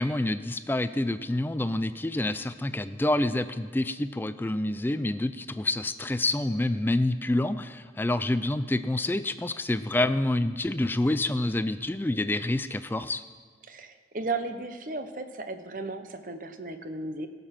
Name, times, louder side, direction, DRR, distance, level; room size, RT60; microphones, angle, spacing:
voice 1, 0.0-13.2, left 1 dB, 10° left, 13 dB, 0.3 m, -27 dB
voice 2, 13.7-17.3, right 3 dB, 50° right, 9 dB, 0.8 m, -35 dB
17.0 x 6.8 x 5.9 m, 1.5 s
head